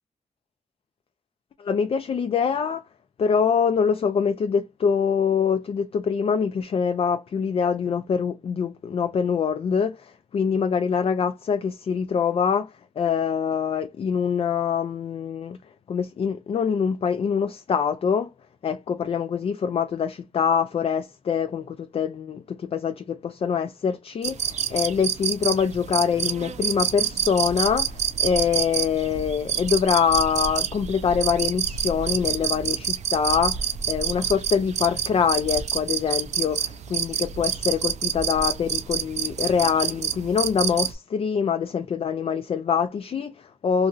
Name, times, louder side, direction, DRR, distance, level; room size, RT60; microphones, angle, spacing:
voice 1, 1.6-2.8 3.2-12.7 13.0-15.6 15.9-18.3 18.6-43.9, left 6 dB, 50° left, 0.4 m, -24 dB
sound 1, 24.2-40.9, right 8 dB, 70° right, 0.4 m, -28 dB
2.9 x 2.5 x 2.4 m
wide cardioid pair, 105°, 12 cm